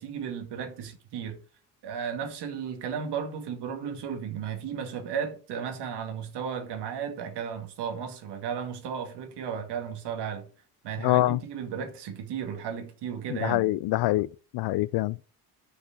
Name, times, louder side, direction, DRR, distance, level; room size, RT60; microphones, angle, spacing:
voice 1, 0.0-1.4 1.8-10.5 10.8-13.7, right 7 dB, 75° right, 2.2 m, -34 dB
voice 2, 11.0-11.4 13.3-14.3 14.5-15.2, left 17 dB, 70° left, 0.5 m, -25 dB
6.4 x 5.5 x 7.2 m
cardioid pair, 100°, 41 cm